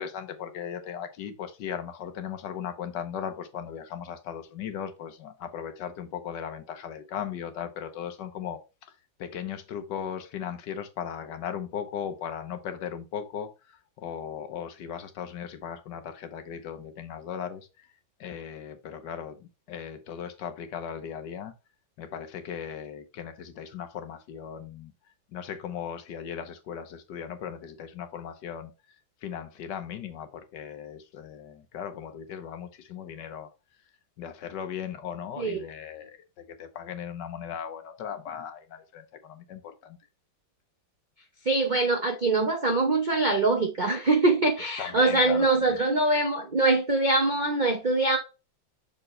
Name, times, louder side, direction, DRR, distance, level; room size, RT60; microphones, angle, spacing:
voice 1, 0.0-17.9 18.2-21.5 22.0-24.9 25.3-28.7 29.2-33.5 34.2-40.0 44.8-45.8, left 8 dB, 70° left, 1.4 m, -37 dB
voice 2, 41.5-48.2, right 2 dB, 60° right, 0.5 m, -23 dB
6.5 x 4.6 x 3.2 m
omnidirectional pair, 2.1 m